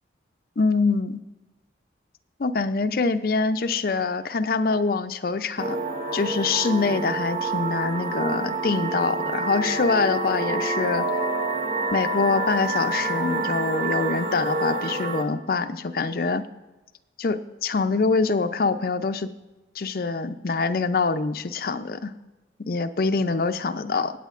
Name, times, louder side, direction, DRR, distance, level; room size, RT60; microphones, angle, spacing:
voice 1, 0.6-1.2 2.4-5.8 6.1-11.1 11.9-16.5 17.2-19.3 19.8-22.1 22.6-24.2, left 4 dB, 50° left, 9 dB, 0.5 m, -24 dB
sound 1, 5.6-15.2, right 2 dB, 45° right, 0.7 m, -28 dB
18.5 x 8.2 x 2.5 m, 1.1 s
head